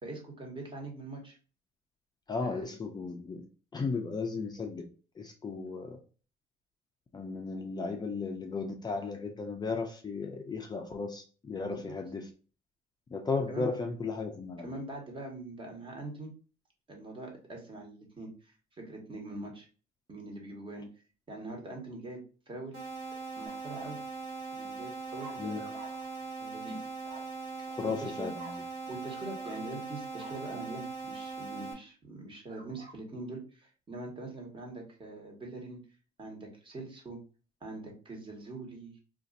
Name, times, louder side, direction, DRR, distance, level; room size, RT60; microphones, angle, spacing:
voice 1, 0.0-1.4 2.4-2.6 11.6-11.9 13.5-13.7 14.6-16.3 16.9-19.7 20.1-20.9 21.3-22.2 22.5-22.8 23.4-24.0 24.6-25.8 26.4-26.9 28.0-28.3 28.9-35.8 36.2-37.2 37.6-38.9, right 2 dB, 30° right, 1 dB, 1.3 m, -43 dB
voice 2, 2.3-3.4 3.7-4.9 5.2-6.0 7.1-12.3 13.1-14.7 25.4-25.6 27.7-28.6, left 4 dB, 25° left, 3 dB, 0.5 m, -35 dB
sound 1, 22.7-31.7, right 4 dB, 85° right, 1.3 m, -40 dB
sound 2, 23.4-24.0 25.1-26.2 27.0-27.4 28.3-28.7 29.1-29.6 30.1-30.8 32.5-33.0, right 3 dB, 55° right, 1.0 m, -50 dB
2.5 x 2.5 x 3.9 m, 0.37 s
cardioid pair, 110°, 17 cm